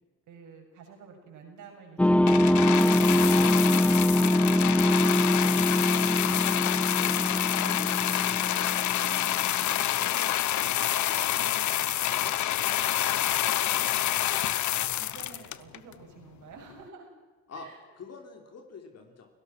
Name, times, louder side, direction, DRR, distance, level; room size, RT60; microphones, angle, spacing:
voice 1, 0.3-3.0 3.9-7.5 8.2-8.6 9.0-9.5 9.9-12.4 13.0-13.3 14.0-14.4 15.0-17.1 17.5-17.8, right 5 dB, 85° right, 2 dB, 6.9 m, -49 dB
sound 1, 2.0-9.5, left 1 dB, 5° left, 0.6 m, -24 dB
sound 2, 2.3-15.9 16.7-16.8, left 13 dB, 70° left, 1.0 m, -27 dB
voice 2, 7.6-8.5 12.5-12.9 17.5-17.7 18.0-19.3, left 4 dB, 55° left, 4 dB, 3.4 m, -45 dB
30.0 x 17.5 x 6.1 m, 1.3 s
cardioid pair, 90°, 30 cm